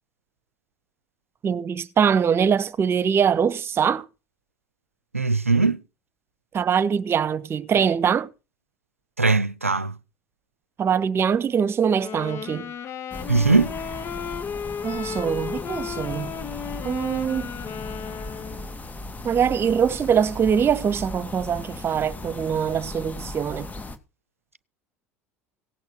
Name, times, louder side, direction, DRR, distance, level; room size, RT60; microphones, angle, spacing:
voice 1, 1.4-4.0 6.5-8.3 10.8-12.7 14.8-16.3 16.8-17.5 19.2-23.7, right 7 dB, 35° right, 1.3 m, -23 dB
voice 2, 5.1-5.8 9.2-10.0 13.3-13.7, right 3 dB, 90° right, 0.7 m, -20 dB
sound 1, 11.9-18.8, left 7 dB, 40° left, 1.9 m, -34 dB
sound 2, 13.1-24.0, left 2 dB, 20° left, 2.2 m, -37 dB
17.5 x 8.7 x 6.3 m
figure-of-eight pair, 65°, 7 cm